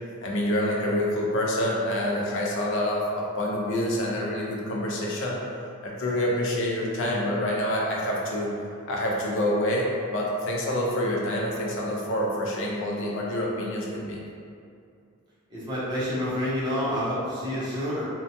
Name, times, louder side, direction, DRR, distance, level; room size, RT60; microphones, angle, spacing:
voice 1, 0.2-5.4 5.8-8.5 8.9-14.2, left 1 dB, 55° left, -3 dB, 0.5 m, -27 dB
voice 2, 15.5-18.0, equal, 20° right, -10 dB, 0.6 m, -28 dB
2.7 x 2.2 x 2.6 m, 2.4 s
head